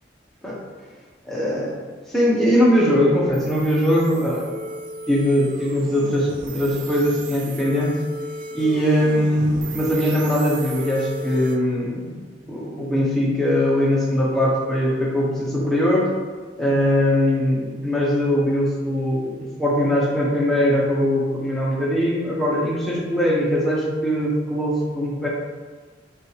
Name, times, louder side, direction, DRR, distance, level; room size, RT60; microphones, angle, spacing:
voice 1, 1.2-1.8 2.1-4.6 5.1-8.0 8.5-12.1 12.5-16.1 16.6-25.3, equal, ahead, -6 dB, 0.7 m, -21 dB
sound 1, 3.3-11.6, right 2 dB, 45° right, 0.3 m, -35 dB
5.5 x 2.4 x 3.2 m, 1.5 s
head